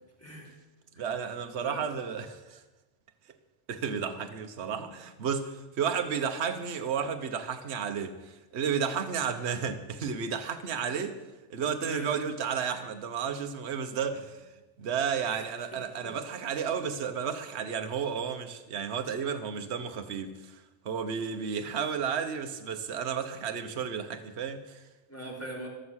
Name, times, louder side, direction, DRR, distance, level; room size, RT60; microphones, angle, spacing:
voice 1, 0.2-0.5 0.9-1.1 1.6-1.9 4.8-4.9 11.8-12.1 15.3-15.5 15.7-16.1 16.7-16.8 25.1-25.7, equal, 10° left, 3.4 m, -41 dB
voice 2, 1.0-2.6 3.7-11.2 11.5-14.4 14.8-24.8, right 7 dB, 60° right, 1.2 m, -32 dB
14.5 x 13.0 x 6.3 m
omnidirectional pair, 1.3 m